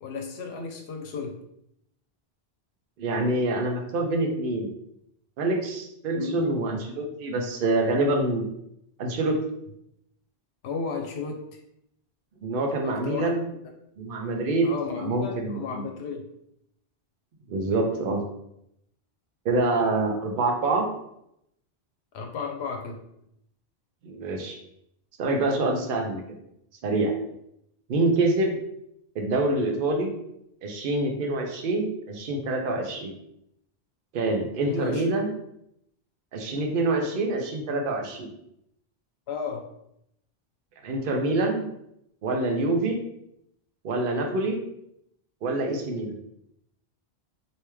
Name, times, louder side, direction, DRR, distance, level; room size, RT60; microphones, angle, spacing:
voice 1, 0.0-1.4 6.2-6.5 10.6-11.4 12.8-13.4 14.6-16.3 22.1-23.0 34.7-35.0 39.3-39.7, left 5 dB, 85° left, 3 dB, 0.8 m, -33 dB
voice 2, 3.0-4.7 5.4-8.4 9.0-9.4 12.4-13.5 14.0-15.9 17.5-18.2 19.4-20.8 24.0-24.6 25.2-26.2 26.8-27.1 27.9-28.6 29.1-30.1 30.6-33.1 34.1-35.3 36.3-38.3 40.8-41.7 42.2-43.0 43.8-44.6 45.4-46.1, right 2 dB, 60° right, 2 dB, 0.8 m, -26 dB
3.3 x 2.7 x 3.0 m, 0.77 s
omnidirectional pair, 1.1 m